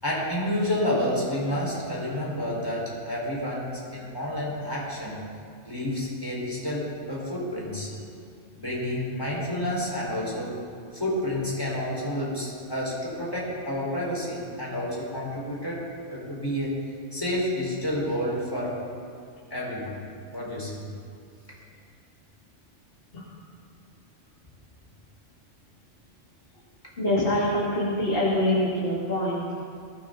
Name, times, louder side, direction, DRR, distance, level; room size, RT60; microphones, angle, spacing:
voice 1, 0.0-5.2 5.6-7.9 8.6-10.6 10.9-16.8 17.1-18.8 19.5-20.0 20.3-20.8, left 1 dB, 20° left, -5 dB, 4.9 m, -29 dB
voice 2, 27.0-29.5, left 1 dB, 50° left, -6 dB, 2.5 m, -25 dB
21.5 x 16.0 x 4.0 m, 2.3 s
omnidirectional pair, 1.3 m